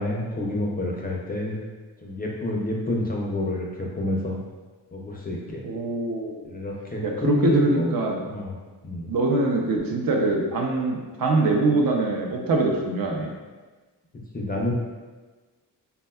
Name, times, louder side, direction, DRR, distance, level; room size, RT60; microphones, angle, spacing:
voice 1, 0.0-1.6 2.0-4.4 4.9-5.6 6.4-8.0 8.2-8.6 8.8-9.1 14.3-14.7, left 1 dB, 25° left, -2 dB, 0.4 m, -28 dB
voice 2, 5.6-6.5 7.0-8.2 9.1-13.3, right 2 dB, 60° right, 0 dB, 0.5 m, -23 dB
3.5 x 2.2 x 2.2 m, 1.3 s
cardioid pair, 90°, 40 cm